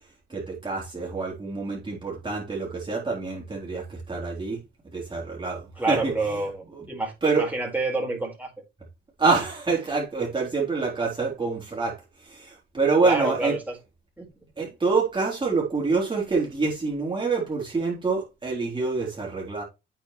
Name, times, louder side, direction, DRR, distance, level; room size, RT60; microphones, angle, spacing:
voice 1, 0.3-4.6 4.9-6.1 7.2-7.5 9.2-12.0 12.2-13.5 14.6-19.6, right 4 dB, 25° right, 3.8 m, -26 dB
voice 2, 5.8-8.5 13.0-13.8 14.2-14.3, right 2 dB, 10° right, 4.7 m, -28 dB
8.9 x 6.6 x 3.2 m
cardioid pair, 90°, 20 cm